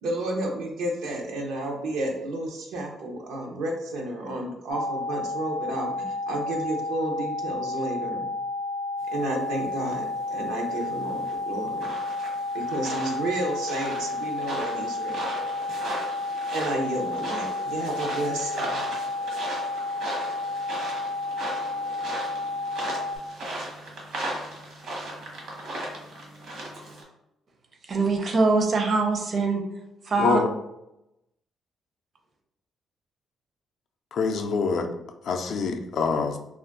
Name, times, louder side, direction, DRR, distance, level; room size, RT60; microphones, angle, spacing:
voice 1, 0.0-8.3 9.1-11.9 12.5-15.3 16.5-18.8, right 2 dB, 90° right, 1 dB, 0.6 m, -31 dB
sound 1, 4.7-23.2, left 2 dB, 5° left, 0.4 m, -31 dB
sound 2, 9.9-27.0, right 1 dB, 70° right, 1.0 m, -37 dB
voice 2, 27.8-29.6 30.0-30.4, right 3 dB, 45° right, 3 dB, 0.5 m, -23 dB
voice 3, 34.1-34.9 35.3-36.4, left 4 dB, 65° left, 6 dB, 0.3 m, -25 dB
2.3 x 2.2 x 3.6 m, 0.88 s
cardioid pair, 90°, 0 cm